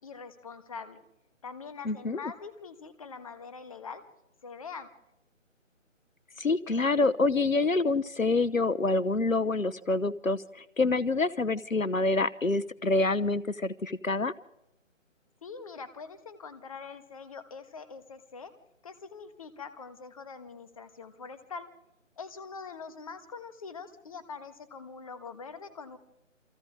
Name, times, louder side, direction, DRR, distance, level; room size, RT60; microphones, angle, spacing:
voice 1, 0.0-1.0 1.4-4.0 4.4-4.9 15.4-18.5 18.8-21.7 22.2-26.0, left 5 dB, 25° left, 12 dB, 1.5 m, -43 dB
voice 2, 1.8-2.2 6.4-14.3, left 3 dB, 85° left, 19 dB, 1.0 m, -27 dB
28.5 x 25.0 x 3.7 m, 0.89 s
figure-of-eight pair, 150°, 39 cm